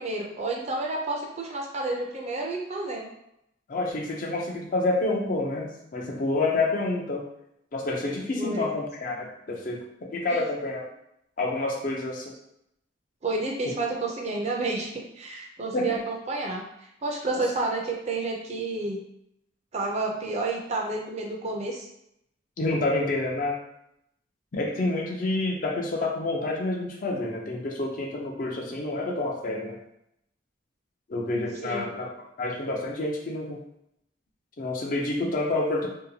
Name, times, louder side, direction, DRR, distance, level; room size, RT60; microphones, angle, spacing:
voice 1, 0.0-3.1 8.4-8.7 10.3-10.4 13.2-16.7 17.0-19.0 19.7-21.9 31.6-31.9, right 2 dB, 35° right, 0 dB, 0.5 m, -30 dB
voice 2, 3.7-7.2 7.7-10.9 11.4-12.3 15.7-16.0 22.6-23.6 24.5-29.8 31.1-32.1 32.4-33.6 34.6-35.9, left 2 dB, 45° left, 0 dB, 0.5 m, -28 dB
2.8 x 2.2 x 2.7 m, 0.78 s
head